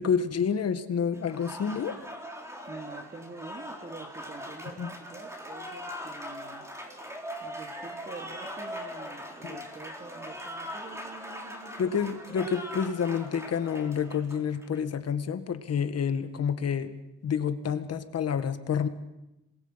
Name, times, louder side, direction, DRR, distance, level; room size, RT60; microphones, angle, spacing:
voice 1, 0.0-2.0 4.8-4.9 9.4-9.6 11.8-16.9 17.2-18.9, left 7 dB, 55° left, 10 dB, 1.8 m, -29 dB
Applause, 1.1-14.8, equal, 10° right, 4.0 m, -41 dB
voice 2, 2.7-6.7 7.4-12.1, right 3 dB, 25° right, 2 dB, 2.7 m, -46 dB
27.0 x 21.0 x 5.8 m, 0.92 s
cardioid pair, 90°, 30 cm